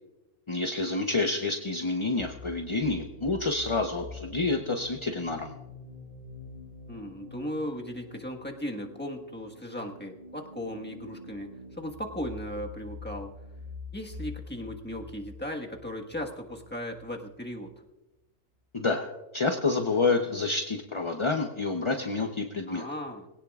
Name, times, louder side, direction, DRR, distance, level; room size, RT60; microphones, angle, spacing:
voice 1, 0.5-5.5 18.7-19.1 19.3-22.8, left 3 dB, 30° left, 3 dB, 0.5 m, -28 dB
sound 1, 2.2-17.7, left 3 dB, 40° right, 5.1 m, -46 dB
voice 2, 6.9-13.3 13.9-17.8 22.7-23.3, equal, 5° left, 1 dB, 1.3 m, -37 dB
21.5 x 17.0 x 2.4 m, 1.0 s
omnidirectional pair, 1.6 m